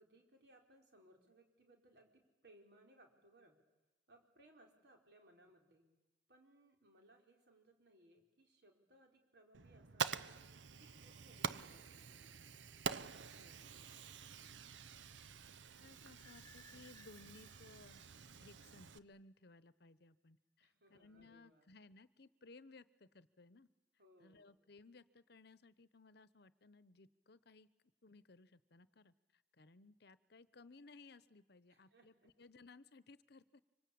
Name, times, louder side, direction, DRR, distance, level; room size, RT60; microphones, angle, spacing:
voice 1, 0.0-3.6 4.1-5.9 6.3-10.4 10.8-12.4 12.9-13.9 20.6-21.7 24.0-24.5 31.7-32.3, right 1 dB, 65° right, 2 dB, 4.7 m, -67 dB
Fire, 9.5-19.0, right 6 dB, 85° right, 0.8 m, -46 dB
voice 2, 15.8-18.0 18.4-23.7 24.2-27.7 28.0-29.1 29.6-33.6, left 3 dB, 60° left, 16 dB, 0.9 m, -61 dB
sound 1, 16.2-19.0, left 3 dB, 20° left, 0.9 m, -66 dB
25.5 x 25.0 x 8.7 m, 1.0 s
head